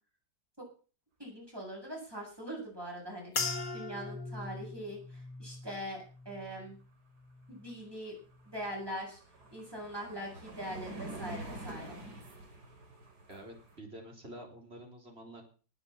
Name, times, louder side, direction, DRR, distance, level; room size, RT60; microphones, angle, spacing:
voice 1, 1.2-3.3 3.7-6.8 7.5-8.2 8.5-9.2 9.5-12.0, equal, 10° right, -2 dB, 7.9 m, -42 dB
sound 1, 3.3-7.9 8.2-8.8 9.4-9.7, left 4 dB, 55° left, 2.3 m, -41 dB
sound 2, 7.7-7.8 8.1-13.8, right 2 dB, 55° right, 3.7 m, -47 dB
voice 2, 13.3-15.4, right 1 dB, 30° right, 1 dB, 4.5 m, -48 dB
19.0 x 7.3 x 7.4 m, 0.39 s
omnidirectional pair, 2.0 m